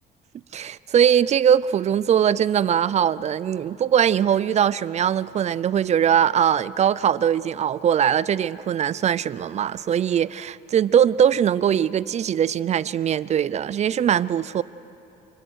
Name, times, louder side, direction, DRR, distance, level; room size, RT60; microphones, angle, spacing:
voice 1, 0.5-14.6, right 9 dB, 40° right, 0.5 m, -21 dB
27.5 x 25.0 x 6.4 m
cardioid pair, 110°, 17 cm